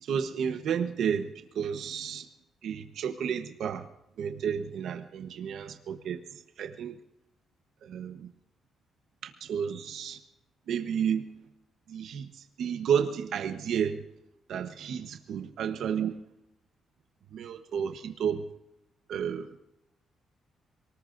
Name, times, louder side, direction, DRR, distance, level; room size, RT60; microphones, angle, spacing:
voice 1, 0.0-1.3 1.5-2.3 2.6-3.9 4.2-6.2 6.6-6.9 7.8-8.3 9.2-10.2 10.7-11.2 11.9-14.0 14.5-16.1 17.3-18.4 19.1-19.5, right 8 dB, 70° right, 6 dB, 1.1 m, -31 dB
26.5 x 19.5 x 2.7 m, 0.88 s
cardioid pair, 145°, 0 cm